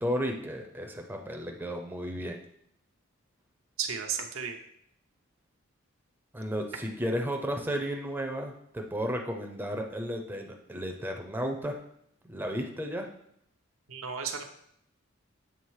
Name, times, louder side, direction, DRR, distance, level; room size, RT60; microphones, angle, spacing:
voice 1, 0.0-2.4 6.3-11.8 12.2-13.1, equal, 10° right, 2 dB, 0.6 m, -33 dB
voice 2, 3.8-4.5 13.9-14.4, right 7 dB, 80° right, 3 dB, 0.8 m, -33 dB
7.3 x 3.5 x 4.7 m, 0.70 s
head